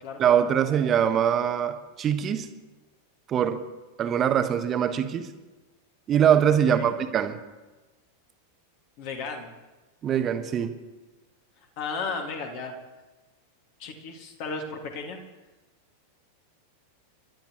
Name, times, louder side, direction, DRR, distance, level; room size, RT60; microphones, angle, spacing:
voice 1, 0.2-2.5 3.3-3.6 4.0-5.3 6.1-7.4 10.0-10.8, right 9 dB, 30° right, 9 dB, 1.1 m, -23 dB
voice 2, 9.0-9.5 11.6-12.7 13.8-15.2, left 4 dB, 45° left, 3 dB, 2.1 m, -34 dB
28.5 x 12.0 x 3.1 m, 1.2 s
figure-of-eight pair, 90°, 0 cm